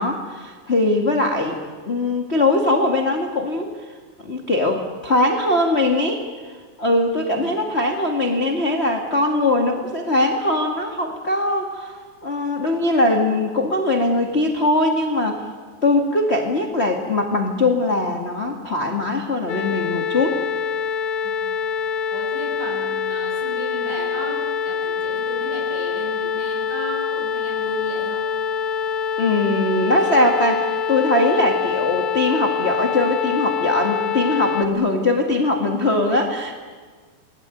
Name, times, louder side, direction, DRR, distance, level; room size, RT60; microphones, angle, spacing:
voice 1, 0.0-3.7 4.2-6.2 6.8-12.0 12.2-15.5 15.8-20.4 29.2-36.5, left 2 dB, 40° left, 2 dB, 0.9 m, -21 dB
voice 2, 7.2-7.6 21.2-21.7 22.1-28.3, right 1 dB, 45° right, -1 dB, 8.3 m, -35 dB
sound 1, 19.5-34.7, left 7 dB, 80° left, 3.9 m, -25 dB
29.0 x 21.0 x 9.2 m, 1.5 s
omnidirectional pair, 4.9 m